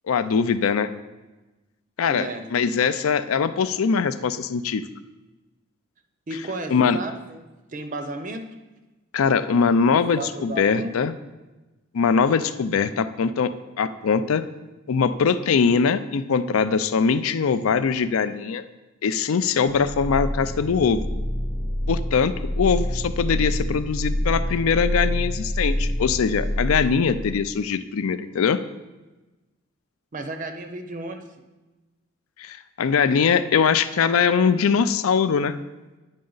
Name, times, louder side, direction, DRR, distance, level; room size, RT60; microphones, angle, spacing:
voice 1, 0.1-0.9 2.0-4.9 6.7-7.0 9.1-11.1 11.9-13.5 13.8-14.4 14.9-18.7 19.0-21.0 21.9-28.6 32.4-35.6, left 6 dB, 80° left, 13 dB, 0.4 m, -22 dB
voice 2, 2.1-2.4 6.3-8.5 9.9-10.9 30.1-31.3, right 2 dB, 40° right, 7 dB, 0.5 m, -33 dB
sound 1, 19.7-27.5, equal, 30° left, 0.7 m, -27 dB
9.8 x 5.2 x 3.9 m, 1.1 s
head